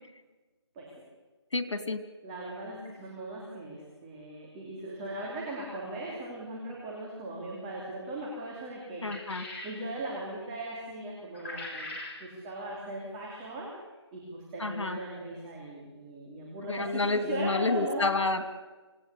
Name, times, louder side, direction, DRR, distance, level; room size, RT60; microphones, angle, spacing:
voice 1, 1.5-2.0 9.0-9.4 14.6-15.0 16.7-18.5, left 3 dB, 85° left, 10 dB, 3.0 m, -29 dB
voice 2, 2.2-9.0 9.6-11.9 12.2-13.7 14.1-18.1, right 2 dB, 10° right, -3 dB, 2.9 m, -38 dB
sound 1, 9.0-9.8 11.3-12.2, left 2 dB, 30° left, 6.1 m, -40 dB
27.0 x 18.0 x 8.3 m, 1.2 s
hypercardioid pair, 175°, 15 cm